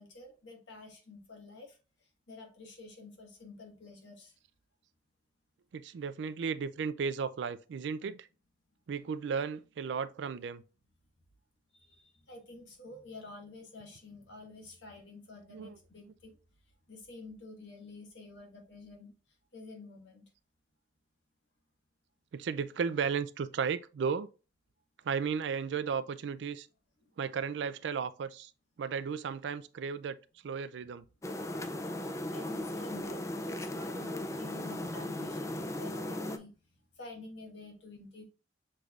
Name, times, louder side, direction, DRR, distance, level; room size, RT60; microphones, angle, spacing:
voice 1, 0.0-1.8 2.3-4.3 11.7-16.4 16.9-19.1 19.5-20.2 32.3-36.5 37.0-38.2, left 3 dB, 80° left, 1.5 m, -49 dB
voice 2, 5.7-8.3 8.9-10.6 15.5-15.8 22.3-24.3 25.0-26.7 27.2-28.5 28.8-30.2 30.4-31.0, right 6 dB, 75° right, 0.3 m, -34 dB
sound 1, 31.2-36.4, left 1 dB, 15° left, 0.3 m, -37 dB
6.5 x 3.2 x 2.4 m
head